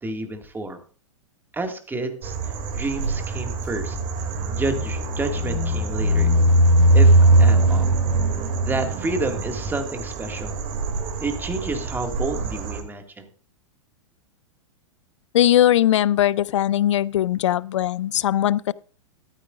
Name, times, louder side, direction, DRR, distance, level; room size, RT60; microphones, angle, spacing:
voice 1, 0.0-0.8 1.5-4.0 4.5-6.3 6.9-7.9 8.6-10.6 11.2-13.3, right 2 dB, 10° right, 2.1 m, -30 dB
sound 1, 2.2-12.8, right 1 dB, 40° right, 2.6 m, -21 dB
voice 2, 15.3-18.7, left 12 dB, 65° left, 0.5 m, -20 dB
14.0 x 13.0 x 2.5 m
figure-of-eight pair, 100°, 17 cm